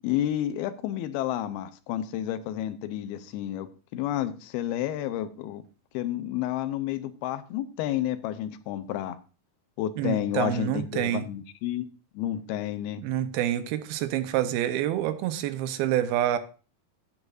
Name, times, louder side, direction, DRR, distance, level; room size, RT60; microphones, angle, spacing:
voice 1, 0.0-3.7 3.9-5.6 5.9-9.2 9.8-11.9 12.1-13.0, left 12 dB, 90° left, 2.7 m, -30 dB
voice 2, 10.0-11.3 13.0-16.4, right 12 dB, 85° right, 2.6 m, -27 dB
14.5 x 8.1 x 2.6 m
omnidirectional pair, 4.4 m